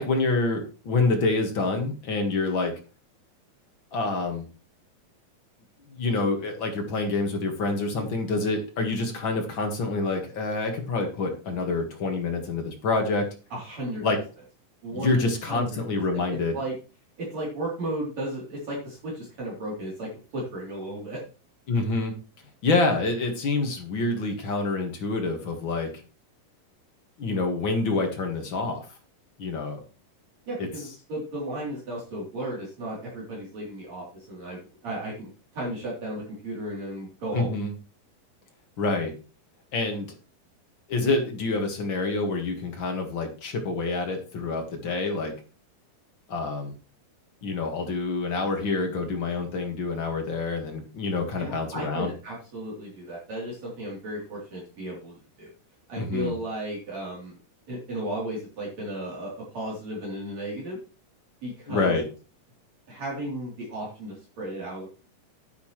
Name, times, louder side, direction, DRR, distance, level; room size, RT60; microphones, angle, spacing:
voice 1, 0.0-2.7 3.9-4.4 5.9-13.3 14.0-14.2 14.9-16.6 21.7-22.1 22.6-25.9 27.2-28.9 29.4-29.8 30.6-30.7 37.3-37.7 38.8-39.1 39.7-40.1 40.9-45.3 46.3-46.7 47.4-52.1 56.0-56.3 61.7-62.0, left 3 dB, 45° left, 3 dB, 1.7 m, -27 dB
voice 2, 13.5-14.0 14.8-15.2 15.5-15.8 16.1-16.7 17.2-21.2 30.5-37.5 51.4-55.5 55.9-57.3 57.7-60.8 61.4-62.0 62.9-64.9, right 1 dB, 45° right, -5 dB, 4.5 m, -34 dB
10.0 x 9.7 x 3.2 m, 0.34 s
omnidirectional pair, 4.3 m